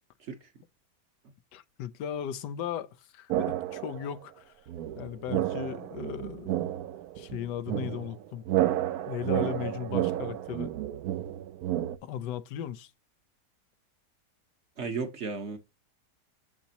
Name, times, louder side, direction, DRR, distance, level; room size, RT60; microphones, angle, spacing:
voice 1, 0.2-0.5 14.8-15.6, right 4 dB, 50° right, 1.1 m, -34 dB
voice 2, 1.5-4.5 4.9-6.6 7.2-8.5 9.1-10.7 12.0-12.9, left 10 dB, 90° left, 1.3 m, -37 dB
sound 1, 3.3-4.1 4.7-12.0, right 13 dB, 70° right, 1.0 m, -31 dB
7.2 x 7.0 x 2.8 m
omnidirectional pair, 1.8 m